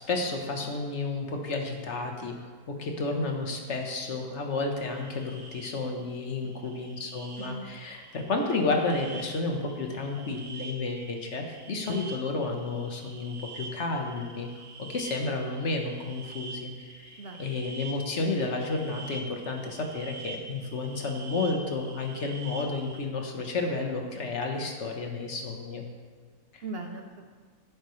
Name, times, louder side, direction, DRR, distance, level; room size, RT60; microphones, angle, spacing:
voice 1, 0.0-2.3 2.8-14.5 14.9-25.8 26.5-26.6, left 3 dB, 50° left, 2 dB, 1.4 m, -31 dB
sound 1, 4.8-23.0, right 3 dB, 75° right, 1.8 m, -46 dB
voice 2, 6.4-7.1 7.4-7.7 17.2-17.5 26.6-27.2, right 2 dB, 55° right, 3 dB, 0.7 m, -40 dB
11.5 x 9.6 x 3.2 m, 1.5 s
omnidirectional pair, 1.7 m